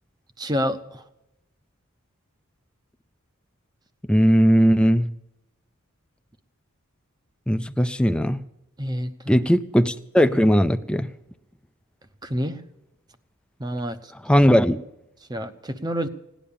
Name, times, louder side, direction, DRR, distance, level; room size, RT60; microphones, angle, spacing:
voice 1, 0.4-1.0 8.8-9.4 12.2-12.6 13.6-14.1 15.3-16.1, equal, 20° right, 11 dB, 0.8 m, -28 dB
voice 2, 4.1-5.1 7.5-8.4 9.3-11.1 14.2-14.8, equal, 5° left, 10 dB, 0.4 m, -18 dB
17.5 x 10.0 x 7.0 m, 0.89 s
head